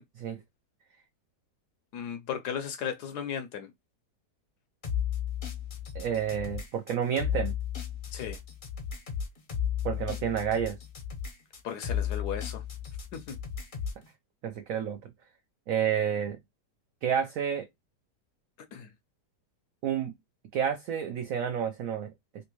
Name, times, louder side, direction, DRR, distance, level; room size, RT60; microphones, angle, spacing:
voice 1, 1.9-3.7 8.1-8.4 11.6-12.6 13.1-13.4 18.7-18.9, left 8 dB, 75° left, 1.1 m, -35 dB
sound 1, 4.8-14.1, left 9 dB, 45° left, 0.7 m, -34 dB
voice 2, 5.9-7.5 9.8-10.8 14.4-15.0 15.7-16.4 17.0-17.7 19.8-20.1 20.5-22.1, right 8 dB, 70° right, 0.8 m, -29 dB
3.4 x 2.7 x 2.9 m
omnidirectional pair, 1.9 m